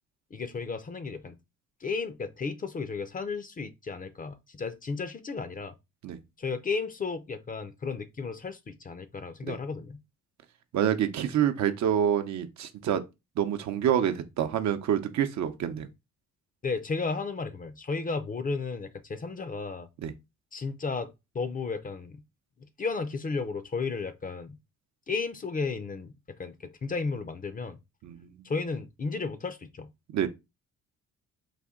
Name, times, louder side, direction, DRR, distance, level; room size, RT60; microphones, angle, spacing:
voice 1, 0.3-1.3 1.8-5.7 6.4-10.0 16.6-19.9 20.5-22.2 22.8-24.6 25.1-26.1 26.4-27.8 28.4-29.9, left 4 dB, 30° left, 0.5 m, -33 dB
voice 2, 10.7-13.0 13.4-15.9 20.0-20.1 28.0-28.3 30.1-30.3, right 9 dB, 65° right, 0.7 m, -27 dB
4.1 x 2.6 x 3.6 m
cardioid pair, 90°, 30 cm